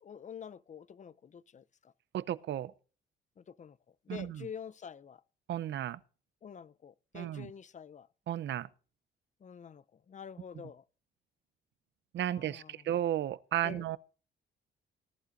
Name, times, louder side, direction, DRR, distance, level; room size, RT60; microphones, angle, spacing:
voice 1, 0.0-1.9 3.4-3.8 4.1-5.2 6.4-8.1 9.4-10.8 12.3-12.8 13.6-13.9, left 7 dB, 40° left, 0.6 m, -47 dB
voice 2, 2.1-2.7 4.1-4.5 5.5-6.0 7.1-7.5 8.3-8.7 12.1-14.0, right 11 dB, 65° right, 0.7 m, -34 dB
19.0 x 11.0 x 2.6 m
cardioid pair, 90°, 20 cm